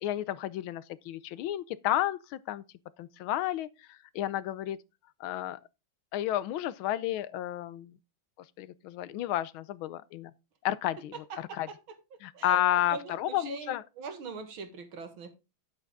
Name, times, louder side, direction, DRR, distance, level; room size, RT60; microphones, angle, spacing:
voice 1, 0.0-2.6 3.0-4.8 5.2-5.6 6.1-8.0 8.6-10.3 10.6-11.7 12.2-13.8, left 13 dB, 85° left, 1.5 m, -31 dB
voice 2, 11.3-11.8 12.3-15.3, right 5 dB, 85° right, 2.5 m, -42 dB
9.8 x 8.2 x 3.5 m
omnidirectional pair, 2.2 m